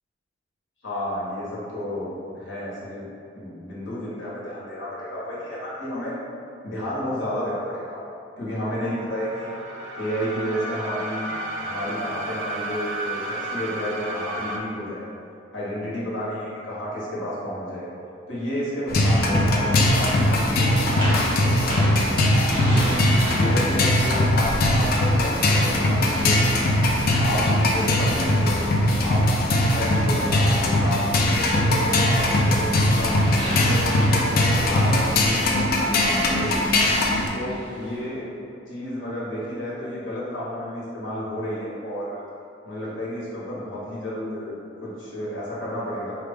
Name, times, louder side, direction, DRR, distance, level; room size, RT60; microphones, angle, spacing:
voice 1, 0.8-3.1 3.3-6.2 6.6-8.0 8.4-9.5 10.0-11.3 11.6-15.1 15.5-17.9 18.3-22.1 22.7-26.7 27.1-28.7 29.0-29.2 29.7-33.2 33.6-36.7 37.3-38.3 38.7-42.2 42.6-46.2, equal, 80° left, -7 dB, 1.3 m, -31 dB
sound 1, 8.6-14.6, right 2 dB, 85° right, 0.5 m, -33 dB
sound 2, 18.9-37.3, left 1 dB, 50° left, 0.5 m, -20 dB
sound 3, 20.8-26.0 26.4-32.6 32.9-38.0, equal, 25° right, 1.3 m, -36 dB
4.5 x 2.5 x 3.5 m, 2.5 s
head